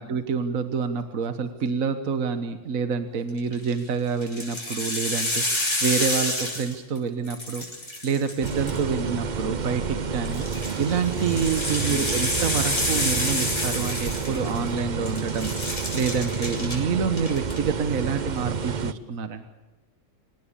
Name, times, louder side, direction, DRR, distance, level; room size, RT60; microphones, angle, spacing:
voice 1, 0.0-7.7 8.0-15.5 15.9-19.4, right 6 dB, 60° right, 8 dB, 1.7 m, -27 dB
sound 1, 3.4-3.7 4.2-7.0 7.2-9.1 10.2-14.8 15.1-16.8 17.1-17.6, left 1 dB, 45° left, 6.6 m, -28 dB
sound 2, 8.4-18.9, right 5 dB, 40° right, 0.7 m, -30 dB
27.0 x 17.5 x 6.8 m, 1.1 s
omnidirectional pair, 1.7 m